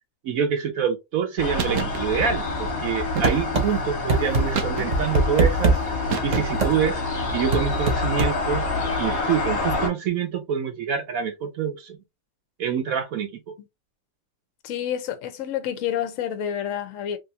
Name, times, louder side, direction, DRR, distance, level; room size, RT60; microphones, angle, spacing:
voice 1, 0.2-7.0 7.3-8.6 9.0-12.0 12.6-13.6, right 7 dB, 65° right, 1.0 m, -26 dB
sound 1, 1.4-9.9, left 3 dB, 40° left, 1.1 m, -27 dB
sound 2, 1.6-2.0 3.2-3.7 4.5-5.2 6.1-6.7, right 8 dB, 90° right, 1.3 m, -30 dB
sound 3, 3.2-3.7 4.1-4.4 4.9-5.8 6.3-6.7 7.5-8.3, right 3 dB, 30° right, 0.8 m, -20 dB
voice 2, 14.6-17.2, left 10 dB, 65° left, 0.9 m, -28 dB
3.4 x 2.6 x 2.6 m
omnidirectional pair, 1.8 m